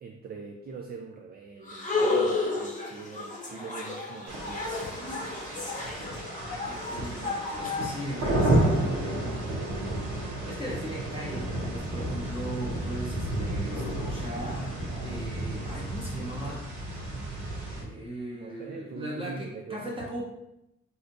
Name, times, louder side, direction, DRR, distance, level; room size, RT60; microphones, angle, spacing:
voice 1, 0.0-4.9 18.4-20.1, right 5 dB, 35° right, 2 dB, 0.4 m, -42 dB
sound 1, 1.7-8.6, left 3 dB, 25° left, 0.8 m, -32 dB
sound 2, 4.3-17.8, right 1 dB, 85° right, 1.0 m, -31 dB
voice 2, 6.6-9.8 10.1-16.6 17.8-20.2, right 1 dB, 20° right, -4 dB, 0.8 m, -38 dB
sound 3, 7.8-15.7, left 2 dB, 75° left, 1.1 m, -46 dB
4.2 x 2.5 x 2.6 m, 0.85 s
cardioid pair, 90°, 30 cm